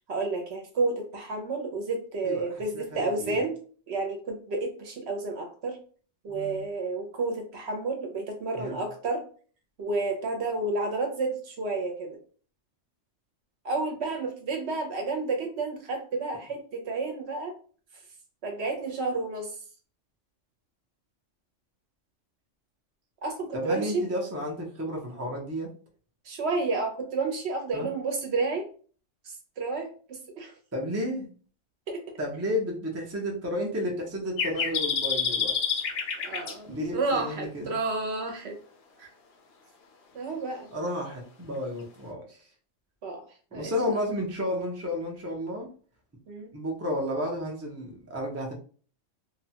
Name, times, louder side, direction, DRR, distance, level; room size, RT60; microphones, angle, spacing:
voice 1, 0.0-3.5 3.9-5.8 6.2-9.2 9.8-12.2 13.6-17.5 18.4-19.5 23.2-24.0 26.2-28.7 29.2-30.5 31.9-32.0 36.2-38.6 39.0-39.1 40.1-40.7 43.0-43.2 43.5-43.7 46.3-46.5, right 3 dB, 60° right, 3 dB, 0.9 m, -31 dB
voice 2, 2.7-3.4 6.3-6.6 8.5-8.8 23.5-25.7 27.7-27.9 30.7-31.3 32.2-35.8 36.7-37.7 40.7-42.4 43.5-45.7 46.5-48.5, left 1 dB, 20° right, 0 dB, 0.4 m, -32 dB
sound 1, 34.4-36.5, left 6 dB, 65° left, 0.8 m, -28 dB
2.8 x 2.2 x 2.8 m, 0.41 s
omnidirectional pair, 1.3 m